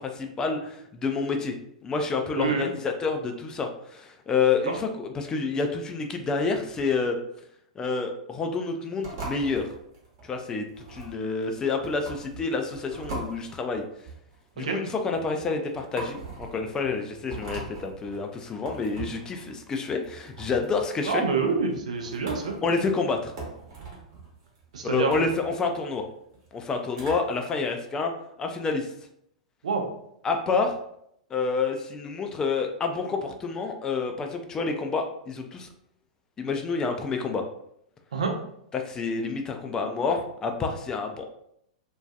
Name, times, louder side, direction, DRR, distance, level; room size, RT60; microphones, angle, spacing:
voice 1, 0.0-1.5 1.8-7.2 7.8-9.7 10.2-13.8 14.6-21.2 22.6-23.3 24.8-26.0 26.5-28.1 28.4-28.9 30.2-30.7 31.3-35.7 36.4-37.4 38.7-41.3, left 4 dB, 20° left, 4 dB, 0.3 m, -28 dB
voice 2, 2.4-2.7 4.6-4.7 14.6-14.8 21.1-22.6 24.7-25.2 29.6-29.9 38.1-38.3, right 4 dB, 65° right, 2 dB, 0.5 m, -26 dB
sound 1, 9.0-27.4, right 3 dB, 45° right, 1.0 m, -42 dB
2.5 x 2.3 x 2.2 m, 0.74 s
figure-of-eight pair, 100°, 4 cm